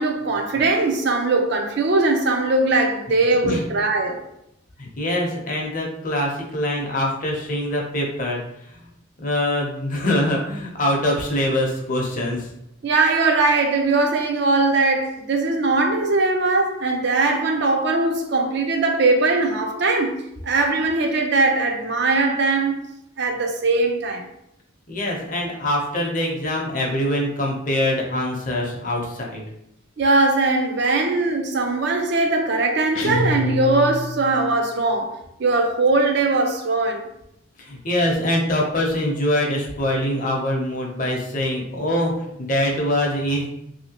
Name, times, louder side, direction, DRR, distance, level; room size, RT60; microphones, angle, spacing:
voice 1, 0.0-4.2 12.8-22.8 23.2-24.3 30.0-37.1, right 3 dB, 55° right, 0.4 m, -20 dB
voice 2, 4.8-8.9 9.2-12.5 24.9-29.4 37.6-43.5, left 1 dB, 40° left, 0.7 m, -24 dB
sound 1, 32.9-34.7, left 1 dB, 75° left, 0.4 m, -26 dB
3.1 x 2.8 x 2.8 m
head